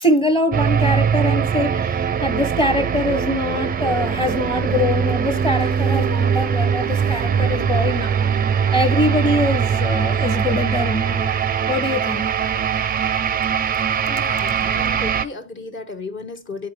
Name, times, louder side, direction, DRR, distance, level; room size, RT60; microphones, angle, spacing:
voice 1, 0.0-8.1 8.7-11.3 11.7-12.2, left 1 dB, 15° left, 0.8 m, -23 dB
sound 1, 0.5-15.3, right 7 dB, 30° right, 0.4 m, -21 dB
voice 2, 14.0-16.7, left 4 dB, 40° left, 0.8 m, -34 dB
9.5 x 4.0 x 3.0 m
cardioid pair, 90°, 30 cm